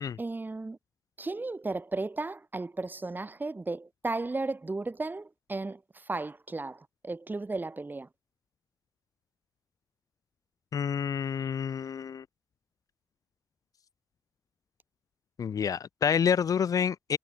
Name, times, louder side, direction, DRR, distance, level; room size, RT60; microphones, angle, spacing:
voice 1, 0.2-0.8 1.2-8.1, right 3 dB, 25° right, 2.5 m, -35 dB
voice 2, 10.7-12.2 15.4-17.2, left 7 dB, 60° left, 0.9 m, -28 dB
supercardioid pair, 50°, 7 cm